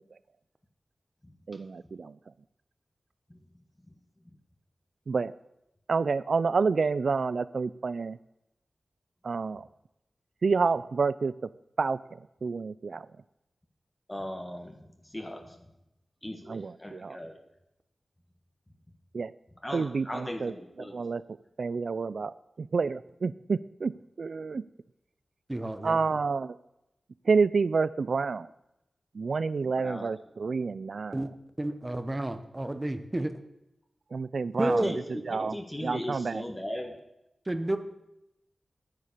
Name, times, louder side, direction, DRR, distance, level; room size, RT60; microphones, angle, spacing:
voice 1, 1.5-2.1 5.1-5.3 5.9-8.2 9.2-9.7 10.4-11.3 11.8-12.0 12.4-13.1 16.5-17.2 19.1-19.3 19.7-21.2 21.6-24.6 25.8-26.6 27.3-28.5 29.1-31.2 34.1-34.9 35.3-36.4, right 4 dB, 70° right, 18 dB, 0.4 m, -29 dB
voice 2, 14.1-14.7 15.1-15.4 16.2-17.3 19.6-21.0 29.8-30.1 34.6-35.0 35.3-36.9, left 1 dB, 15° left, 3 dB, 1.4 m, -37 dB
voice 3, 25.5-26.0 31.1-31.3 31.6-33.3 34.6-34.9 37.5-37.8, right 1 dB, 20° right, 9 dB, 1.0 m, -30 dB
9.9 x 9.8 x 6.7 m, 0.87 s
wide cardioid pair, 100°, 0 cm